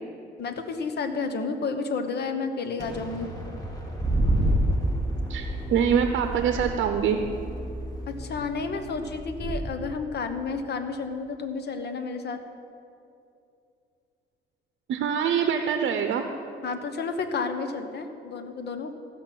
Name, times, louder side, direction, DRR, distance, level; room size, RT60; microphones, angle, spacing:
voice 1, 0.4-3.3 8.1-12.4 16.6-18.9, left 4 dB, 55° left, 8 dB, 1.0 m, -31 dB
Explosion, 2.8-8.8, equal, 20° left, 2.0 m, -39 dB
sound 1, 4.0-9.6, right 1 dB, 20° right, 2.7 m, -29 dB
voice 2, 5.3-7.2 14.9-16.2, right 8 dB, 75° right, 6 dB, 0.7 m, -24 dB
15.5 x 6.1 x 6.1 m, 2.6 s
cardioid pair, 90°, 20 cm